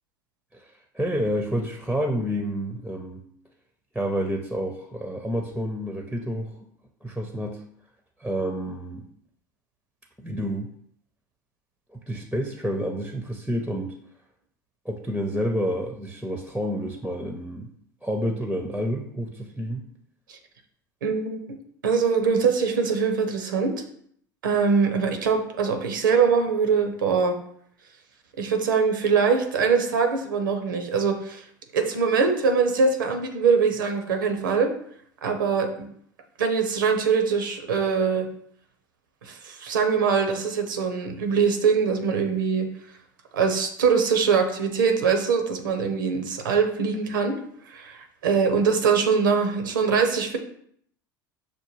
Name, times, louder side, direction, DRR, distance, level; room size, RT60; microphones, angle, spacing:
voice 1, 0.5-3.2 3.9-6.6 7.0-7.6 8.2-9.1 10.2-10.7 11.9-13.9 14.8-17.7 18.0-19.9, equal, ahead, 2 dB, 0.5 m, -29 dB
voice 2, 21.0-21.5 21.8-23.8 24.4-27.4 28.4-31.4 31.7-34.7 35.2-35.9 36.4-38.3 39.2-42.7 43.3-47.4 47.7-50.4, right 5 dB, 75° right, 6 dB, 0.6 m, -23 dB
5.8 x 2.2 x 3.1 m, 0.66 s
figure-of-eight pair, 75°, 11 cm